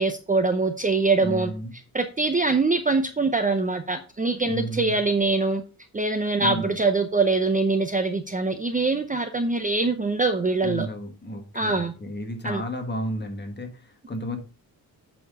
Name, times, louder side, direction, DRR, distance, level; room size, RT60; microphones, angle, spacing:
voice 1, 0.0-1.5 1.9-5.6 5.9-10.9 11.5-11.9 12.4-12.6, right 3 dB, 20° right, 7 dB, 0.6 m, -23 dB
voice 2, 1.2-1.7 4.4-5.0 6.4-6.7 10.6-14.4, equal, 30° left, 4 dB, 1.6 m, -32 dB
8.3 x 4.3 x 5.3 m, 0.34 s
wide cardioid pair, 165°, 37 cm